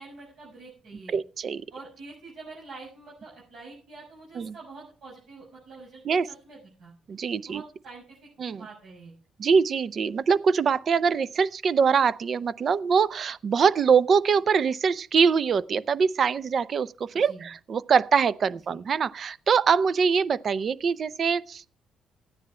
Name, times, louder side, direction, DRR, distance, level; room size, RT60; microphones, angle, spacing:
voice 1, 0.0-1.2 1.7-6.9 7.5-8.3 8.6-9.1 17.1-17.4 18.7-18.8, right 3 dB, 75° right, 6.4 m, -46 dB
voice 2, 1.1-1.6 4.4-4.5 6.0-6.3 7.1-7.6 8.4-8.6 9.4-21.7, right 6 dB, 50° right, 0.6 m, -23 dB
14.5 x 9.8 x 4.3 m
cardioid pair, 90°, 0 cm